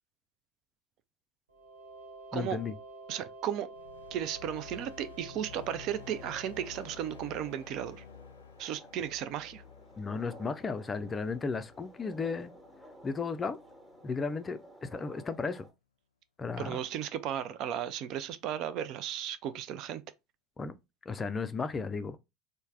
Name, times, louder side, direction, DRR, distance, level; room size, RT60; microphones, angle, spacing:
sound 1, 1.5-8.1, right 3 dB, 80° right, 0.7 m, -50 dB
voice 1, 2.3-2.7 10.0-12.5 13.0-13.6 14.0-15.7 16.4-16.8 20.6-20.8 21.1-22.2, left 4 dB, 25° left, 0.4 m, -34 dB
voice 2, 3.1-3.7 4.1-8.0 8.6-9.6 16.6-20.0, right 10 dB, 50° right, 0.3 m, -35 dB
sound 2, 3.7-14.2, left 8 dB, 80° left, 0.5 m, -53 dB
sound 3, 5.5-15.7, equal, 15° right, 1.2 m, -54 dB
3.2 x 2.1 x 3.4 m
figure-of-eight pair, 70°, 0 cm